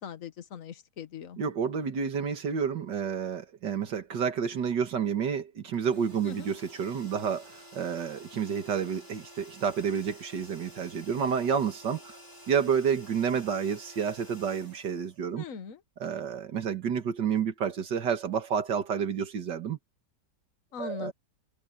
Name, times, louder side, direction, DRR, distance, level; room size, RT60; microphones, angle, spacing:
voice 1, 0.0-1.4 6.2-6.5 15.4-15.8 20.7-21.1, left 6 dB, 55° left, 1.5 m, -40 dB
voice 2, 1.4-12.2 12.5-15.4 16.0-19.8 20.8-21.1, right 7 dB, 85° right, 2.2 m, -30 dB
sound 1, 5.7-15.7, equal, 25° right, 4.6 m, -51 dB
omnidirectional pair, 1.8 m